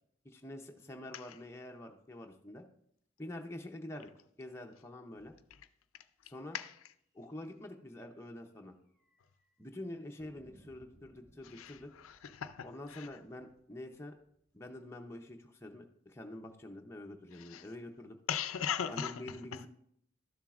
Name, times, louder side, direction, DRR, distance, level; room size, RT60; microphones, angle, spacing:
voice 1, 0.2-2.6 3.2-4.1 4.4-5.3 6.2-6.6 7.1-8.7 9.6-11.9 12.6-14.2 14.5-18.2 18.9-19.7, left 1 dB, 15° left, 0.6 m, -46 dB
sound 1, 7.8-7.9 8.2-8.3 9.0-9.5 10.2-15.0, right 1 dB, 5° right, 1.1 m, -65 dB
voice 2, 11.6-13.1 17.3-17.7 18.3-19.6, left 8 dB, 90° left, 0.5 m, -39 dB
12.5 x 7.3 x 2.4 m
head